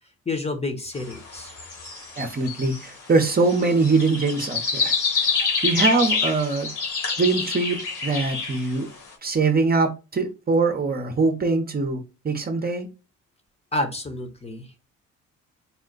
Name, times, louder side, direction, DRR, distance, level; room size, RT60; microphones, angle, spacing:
voice 1, 0.3-1.5 13.7-14.9, left 2 dB, 20° left, 6 dB, 0.9 m, -29 dB
sound 1, 1.0-9.0, left 4 dB, 75° left, 1.9 m, -27 dB
voice 2, 2.2-4.9 5.6-6.7 7.2-8.9 9.2-12.9, right 3 dB, 30° right, 5 dB, 0.8 m, -22 dB
4.3 x 2.2 x 3.8 m, 0.30 s
cardioid pair, 90°, 30 cm